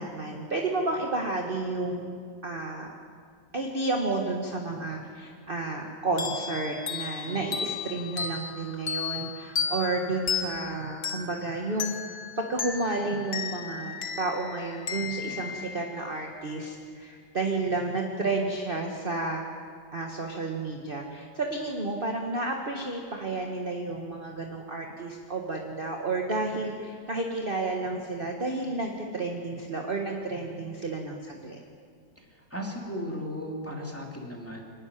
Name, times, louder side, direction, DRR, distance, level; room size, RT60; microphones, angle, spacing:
voice 1, 0.0-2.1 2.4-2.9 3.5-19.4 19.9-31.6, right 3 dB, 30° right, 1 dB, 1.6 m, -31 dB
sound 1, 6.2-16.5, left 6 dB, 45° left, 1.6 m, -35 dB
voice 2, 32.2-34.6, equal, 5° left, -1 dB, 2.9 m, -36 dB
26.0 x 12.0 x 9.9 m, 2.1 s
omnidirectional pair, 2.1 m